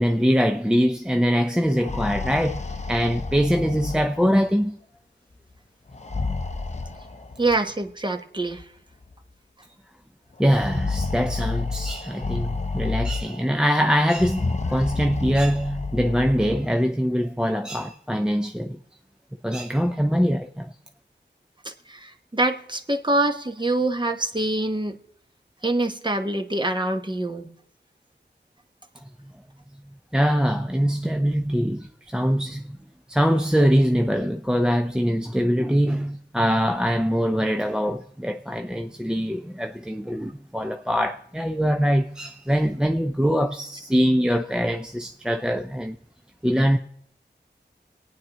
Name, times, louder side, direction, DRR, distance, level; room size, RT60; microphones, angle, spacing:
voice 1, 0.0-2.6 2.9-4.8 10.4-18.8 19.4-20.7 30.1-32.8 33.1-46.0 46.4-46.8, equal, 5° right, 0.5 m, -23 dB
sound 1, 1.7-4.5 5.9-7.6 8.6-8.7 9.0-9.1 10.4-13.5 14.1-16.7, left 3 dB, 40° left, 0.7 m, -30 dB
voice 2, 7.4-8.6 21.9-25.0 25.6-27.5, right 2 dB, 25° right, 1.0 m, -25 dB
26.5 x 9.2 x 3.0 m
cardioid pair, 45°, 19 cm